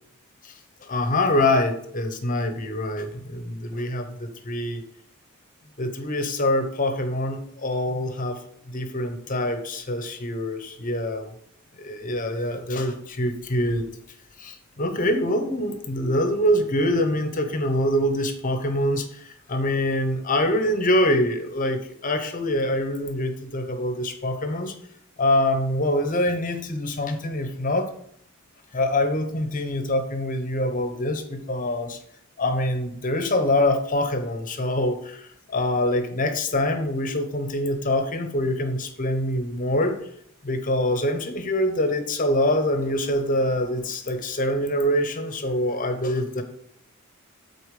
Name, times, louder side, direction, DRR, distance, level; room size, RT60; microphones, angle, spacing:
voice 1, 0.8-4.8 5.8-8.4 8.7-11.3 11.8-13.9 14.4-24.7 25.2-27.9 28.7-32.0 32.4-40.0 40.4-46.4, left 1 dB, 40° left, 7 dB, 1.1 m, -25 dB
8.4 x 4.3 x 6.6 m, 0.69 s
head